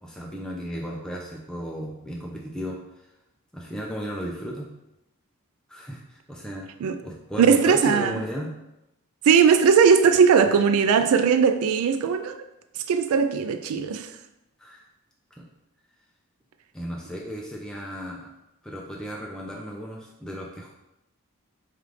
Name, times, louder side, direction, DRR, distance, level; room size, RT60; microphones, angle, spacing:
voice 1, 0.0-2.8 3.5-4.7 5.7-6.7 7.0-8.5 14.6-14.8 15.4-15.5 16.7-18.3 18.6-20.7, equal, 5° left, 0.3 m, -35 dB
voice 2, 7.4-8.1 9.3-12.4 12.9-14.1, right 6 dB, 75° right, 0.3 m, -19 dB
4.8 x 2.4 x 3.2 m
head